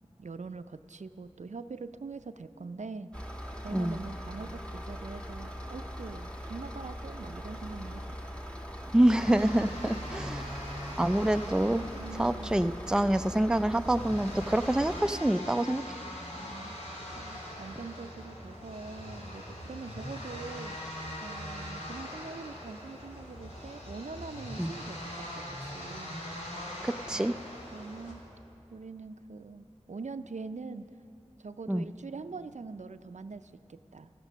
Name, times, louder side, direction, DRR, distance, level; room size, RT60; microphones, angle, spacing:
voice 1, 0.2-8.3 9.8-10.5 12.0-12.7 16.4-16.8 17.2-26.2 27.1-27.3 27.7-28.2 28.7-30.9 31.4-34.1, right 4 dB, 80° right, 11 dB, 0.5 m, -44 dB
sound 1, 3.1-15.0, equal, 10° left, 1.5 m, -41 dB
voice 2, 8.9-10.5 11.0-11.9 12.2-15.8 24.6-24.7 26.8-27.3 31.7-31.9, right 1 dB, 5° right, 11 dB, 0.4 m, -26 dB
sound 2, 9.2-28.1, left 1 dB, 75° left, 2.8 m, -42 dB
14.5 x 13.5 x 6.2 m, 2.6 s
wide cardioid pair, 45°, 12 cm